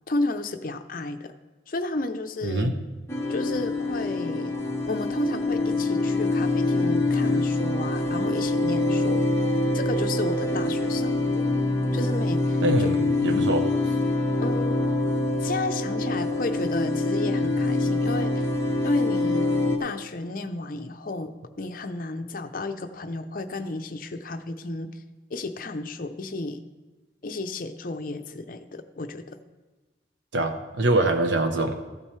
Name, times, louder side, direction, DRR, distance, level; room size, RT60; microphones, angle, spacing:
voice 1, 0.1-1.3 1.7-2.7 3.3-4.5 4.9-9.2 9.7-11.3 11.9-12.9 13.3-13.5 14.4-14.8 15.4-18.5 18.8-19.5 19.8-25.0 25.3-26.6 27.2-29.4, left 2 dB, 45° left, 8 dB, 0.6 m, -32 dB
voice 2, 2.4-2.8 12.6-13.6 30.3-31.8, right 2 dB, 75° right, 6 dB, 0.9 m, -24 dB
sound 1, 3.1-19.8, left 2 dB, 15° left, 0.8 m, -25 dB
14.5 x 8.8 x 3.2 m, 1.2 s
head